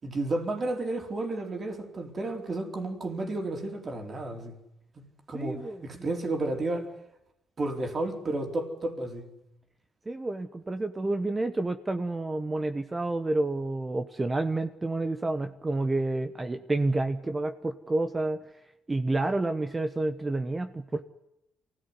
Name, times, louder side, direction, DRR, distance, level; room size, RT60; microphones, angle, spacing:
voice 1, 0.0-4.6 4.9-5.0 5.3-6.9 7.6-9.3, right 2 dB, 40° right, 4 dB, 4.4 m, -32 dB
voice 2, 5.3-5.8 10.1-18.4 18.9-21.1, right 2 dB, 20° right, 9 dB, 1.2 m, -29 dB
24.0 x 16.5 x 9.9 m, 0.88 s
cardioid pair, 90°, 0 cm